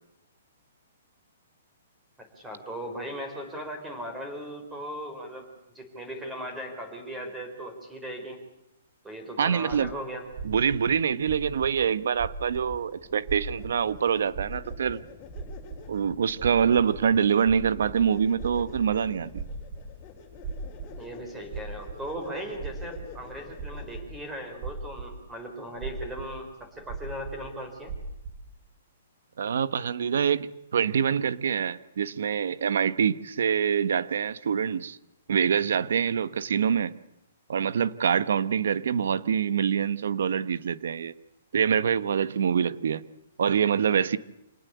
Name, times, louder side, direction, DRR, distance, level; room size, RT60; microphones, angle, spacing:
voice 1, 2.2-5.5 5.7-8.4 9.0-10.2 21.0-27.9, right 1 dB, 10° right, 4.7 m, -38 dB
voice 2, 9.4-9.9 10.4-15.0 15.9-19.4 29.4-35.0 35.3-36.9 37.5-41.1 41.5-43.0 43.4-44.2, right 7 dB, 70° right, 1.3 m, -25 dB
sound 1, 9.7-9.8 10.3-11.7 12.1-12.7 13.2-13.8 14.2-14.9 15.3-15.8 16.3-17.1 17.3-18.0 18.3-19.9 20.4-21.0 21.4-22.0 22.5-23.2 23.5-24.1 24.4-25.2 25.7-27.5 27.7-28.4, right 5 dB, 25° right, 6.2 m, -38 dB
sound 2, 12.6-24.3, left 6 dB, 25° left, 4.2 m, -47 dB
26.5 x 19.0 x 8.2 m
hypercardioid pair, 165°, 0 cm